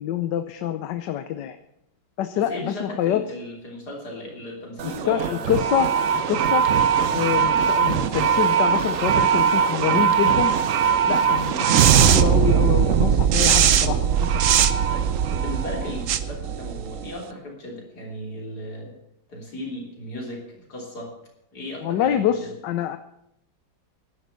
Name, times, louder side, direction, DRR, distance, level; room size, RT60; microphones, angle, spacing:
voice 1, 0.0-1.6 2.2-3.2 4.8-6.6 7.1-10.5 11.1-14.4 21.8-23.0, left 10 dB, 70° left, 10 dB, 1.3 m, -26 dB
voice 2, 2.3-5.7 6.5-7.2 11.4-11.7 14.9-19.0 19.3-21.1 21.5-22.5, left 1 dB, 55° left, 0 dB, 3.9 m, -36 dB
sound 1, 4.8-17.2, right 8 dB, 60° right, 0.9 m, -20 dB
11.5 x 10.5 x 8.1 m, 0.79 s
omnidirectional pair, 2.1 m